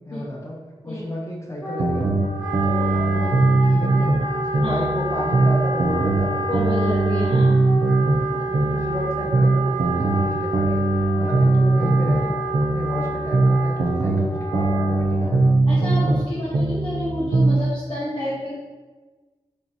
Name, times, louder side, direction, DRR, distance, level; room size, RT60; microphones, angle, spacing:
voice 1, 0.1-0.6 0.8-2.1 2.6-6.5 8.3-15.7, left 1 dB, 25° left, -2 dB, 0.8 m, -33 dB
Wind instrument woodwind instrument, 1.6-15.7, right 2 dB, 10° left, 1.3 m, -28 dB
sound 1, 1.8-4.3 4.5-8.3 8.5-12.3 12.5-16.3 16.5-17.6, right 2 dB, 55° right, 0.4 m, -20 dB
voice 2, 6.5-7.6 15.7-18.5, left 1 dB, 45° left, -9 dB, 1.0 m, -29 dB
3.8 x 3.2 x 2.8 m, 1.3 s
wide cardioid pair, 70°, 11 cm